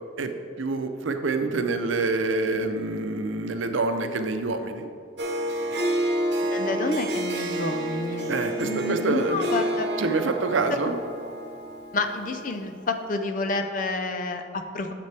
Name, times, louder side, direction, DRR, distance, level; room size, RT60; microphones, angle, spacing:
voice 1, 0.6-4.9 8.3-9.4 10.0-11.0, right 3 dB, 90° right, 7 dB, 0.6 m, -26 dB
Harp, 5.2-12.7, right 1 dB, 60° right, 1.0 m, -29 dB
voice 2, 6.4-8.3 8.6-9.9 10.7-10.9 11.9-14.9, left 3 dB, 45° left, 7 dB, 0.5 m, -29 dB
9.4 x 6.8 x 3.4 m, 2.3 s
head